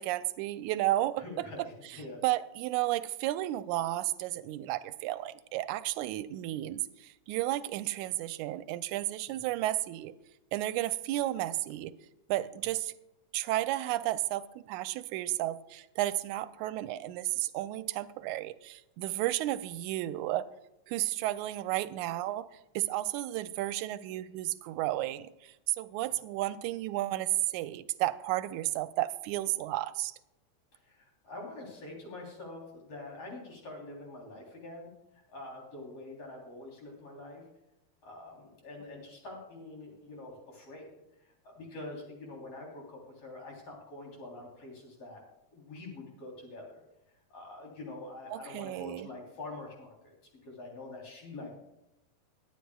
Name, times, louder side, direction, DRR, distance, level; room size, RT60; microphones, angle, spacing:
voice 1, 0.0-1.5 2.2-10.1 10.5-11.9 12.3-12.9 13.3-20.5 20.9-22.5 22.8-30.2 48.3-49.1, right 15 dB, 85° right, 13 dB, 2.0 m, -32 dB
voice 2, 1.2-2.2 9.4-9.5 26.0-26.1 30.9-34.9 35.3-37.4 38.0-40.9 41.4-45.2 45.5-46.8 47.3-50.1 50.4-51.5, left 2 dB, 55° left, -1 dB, 4.4 m, -45 dB
22.0 x 9.8 x 2.3 m, 0.91 s
omnidirectional pair, 3.4 m